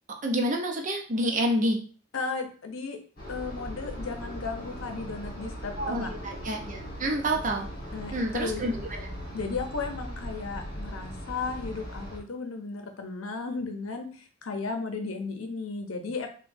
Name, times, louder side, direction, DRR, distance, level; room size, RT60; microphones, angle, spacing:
voice 1, 0.2-1.8 5.8-7.7 8.1-9.1, right 1 dB, 40° right, 1 dB, 0.6 m, -28 dB
voice 2, 2.1-3.0 3.3-6.1 7.9-8.6 9.3-16.3, left 4 dB, 90° left, 5 dB, 0.7 m, -34 dB
sound 1, 3.2-12.2, equal, 45° left, 1.4 m, -39 dB
4.9 x 2.2 x 2.6 m, 0.42 s
head